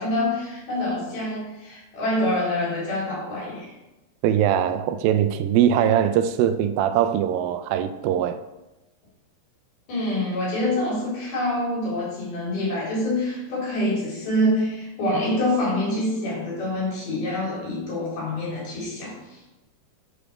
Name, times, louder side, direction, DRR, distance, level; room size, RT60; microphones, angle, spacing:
voice 1, 0.0-3.7 8.1-8.2 9.9-19.4, left 1 dB, 85° left, 5.9 m, -26 dB
voice 2, 4.2-8.4, right 10 dB, 80° right, 2.3 m, -21 dB
9.9 x 7.0 x 4.9 m
omnidirectional pair, 4.2 m